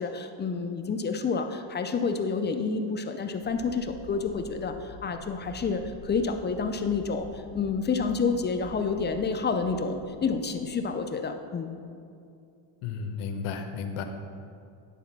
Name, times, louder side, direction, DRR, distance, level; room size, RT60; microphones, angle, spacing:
voice 1, 0.0-7.3 7.5-11.7, left 5 dB, 25° left, 7 dB, 0.3 m, -29 dB
sound 1, 3.4-10.5, right 1 dB, 80° right, 1.8 m, -47 dB
voice 2, 12.8-14.0, left 6 dB, 90° left, 6 dB, 0.9 m, -33 dB
10.0 x 4.0 x 5.9 m, 2.4 s
cardioid pair, 125°, 49 cm